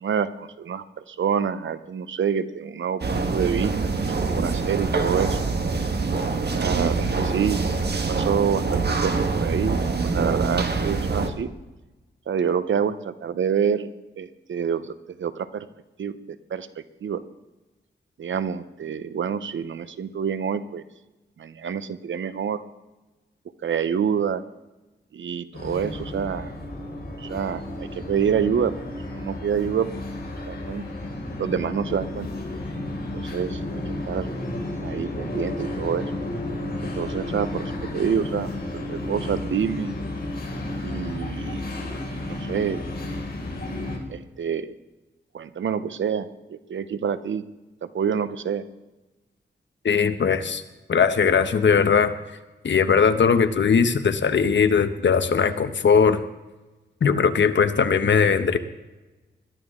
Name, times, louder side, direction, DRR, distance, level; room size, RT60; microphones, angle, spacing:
voice 1, 0.0-3.7 4.3-5.4 6.5-7.6 8.1-11.5 12.3-13.9 14.2-15.7 16.0-16.7 17.0-17.2 18.2-20.8 21.4-22.6 23.6-24.4 25.1-26.5 27.2-28.7 29.1-29.9 30.5-30.8 31.4-32.3 33.2-34.3 34.8-36.0 36.8-39.9 40.8-41.6 42.3-42.8 44.1-44.7 45.3-47.4 47.8-48.6, right 7 dB, 85° right, 13 dB, 0.8 m, -27 dB
sound 1, 3.0-11.3, right 4 dB, 60° right, 1.5 m, -25 dB
sound 2, 25.5-44.0, left 1 dB, 55° left, 4.1 m, -32 dB
voice 2, 49.8-50.6 50.9-52.1 52.6-56.2 57.0-58.6, left 6 dB, 75° left, 9 dB, 1.0 m, -19 dB
21.0 x 13.0 x 3.7 m, 1.1 s
cardioid pair, 60°, 19 cm